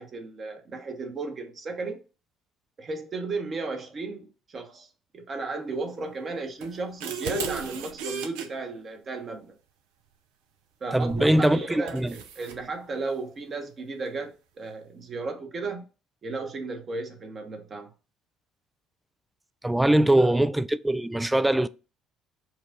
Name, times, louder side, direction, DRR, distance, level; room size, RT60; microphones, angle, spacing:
voice 1, 0.0-2.0 2.8-4.9 5.1-9.5 10.8-15.8 16.2-17.9 19.9-20.4, right 3 dB, 40° right, 1.1 m, -34 dB
sound 1, 6.6-8.5 11.1-11.3 11.9-12.6, right 4 dB, 75° right, 0.6 m, -34 dB
voice 2, 10.9-12.1 19.6-21.7, right 1 dB, 10° right, 0.3 m, -22 dB
4.6 x 2.4 x 3.8 m
hypercardioid pair, 60°, 0 cm